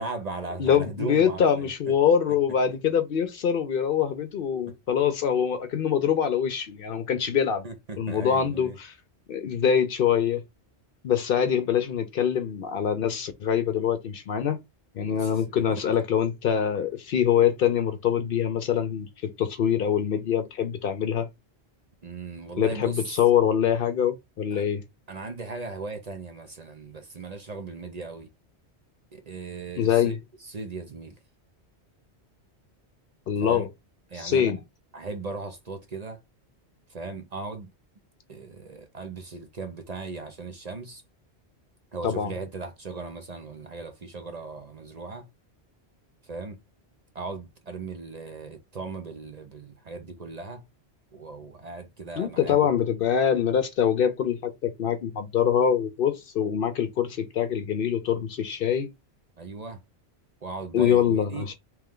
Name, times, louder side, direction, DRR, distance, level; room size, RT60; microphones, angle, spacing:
voice 1, 0.0-1.7 7.6-8.8 15.0-15.4 22.0-23.0 24.5-24.6 25.1-28.3 29.1-30.2 30.4-31.2 33.4-33.7 34.1-34.6 34.9-36.2 36.9-37.7 38.3-41.0 41.9-45.3 46.2-46.6 47.1-50.6 51.1-52.7 59.4-59.8 60.4-61.5, right 3 dB, 45° right, 0.7 m, -37 dB
voice 2, 0.6-7.7 8.0-8.9 9.3-10.4 11.0-14.6 14.9-21.3 22.6-24.8 29.8-30.2 33.3-33.7 34.1-34.6 42.0-42.3 52.2-58.9 60.7-61.5, left 8 dB, 60° left, 0.7 m, -24 dB
3.2 x 3.0 x 3.6 m
omnidirectional pair, 1.1 m